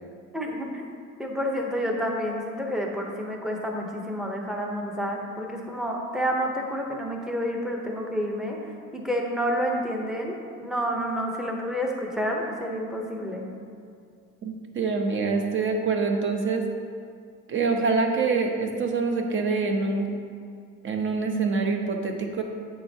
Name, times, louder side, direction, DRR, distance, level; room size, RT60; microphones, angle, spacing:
voice 1, 0.3-0.8 1.2-13.5, equal, ahead, 0 dB, 0.7 m, -29 dB
voice 2, 14.4-16.6 17.5-20.1 20.8-22.4, right 4 dB, 40° right, 3 dB, 0.8 m, -25 dB
8.9 x 7.8 x 2.8 m, 2.3 s
cardioid pair, 165°, 31 cm